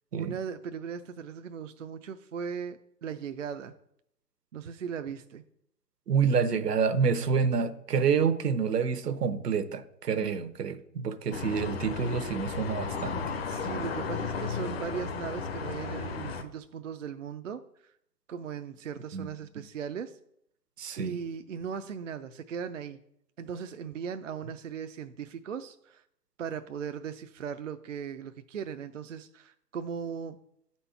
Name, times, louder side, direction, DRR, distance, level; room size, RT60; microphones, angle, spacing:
voice 1, 0.2-3.7 4.5-5.4 13.5-17.9 18.3-20.2 21.0-23.0 23.4-26.0 26.4-30.4, right 7 dB, 55° right, 9 dB, 0.5 m, -38 dB
voice 2, 6.1-13.3 19.1-19.3 20.8-21.2, right 6 dB, 70° right, 11 dB, 0.9 m, -28 dB
sound 1, 11.3-16.4, left 5 dB, 40° left, 0.8 m, -34 dB
8.8 x 4.3 x 5.6 m, 0.74 s
hypercardioid pair, 145°, 49 cm